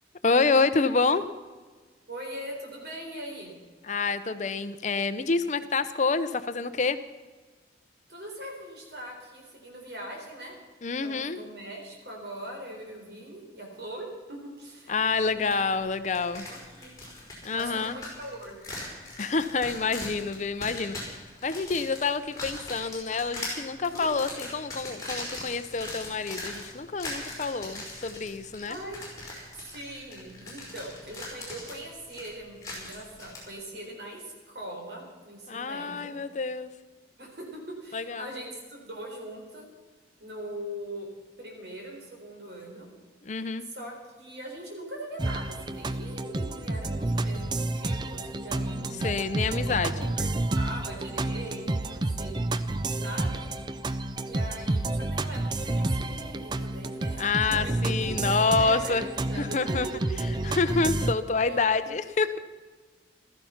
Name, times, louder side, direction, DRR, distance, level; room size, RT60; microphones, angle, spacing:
voice 1, 0.2-1.2 3.9-7.0 10.8-11.4 14.9-16.5 17.4-17.9 19.2-28.8 35.5-36.7 37.9-38.3 43.2-43.7 49.0-50.1 57.2-59.0 59.4-59.9 60.5-62.4, left 4 dB, 40° left, 12 dB, 0.6 m, -27 dB
voice 2, 2.1-3.5 8.1-10.5 11.0-15.0 15.3-15.6 16.5-16.9 17.5-18.6 23.9-24.1 28.6-29.0 29.7-36.1 37.2-39.7 40.2-41.1 41.4-42.9 43.7-49.2 49.9-52.4 53.0-53.4 54.2-57.2 57.6-58.1 58.6-59.6 59.8-60.1 60.4-60.5 61.4-61.6, right 1 dB, 65° right, 1 dB, 4.3 m, -41 dB
sound 1, 15.5-15.6 15.9-33.4, left 2 dB, 20° left, 4.9 m, -40 dB
sound 2, 45.2-61.1, right 2 dB, 25° right, 0.5 m, -30 dB
15.5 x 13.5 x 5.8 m, 1.3 s
head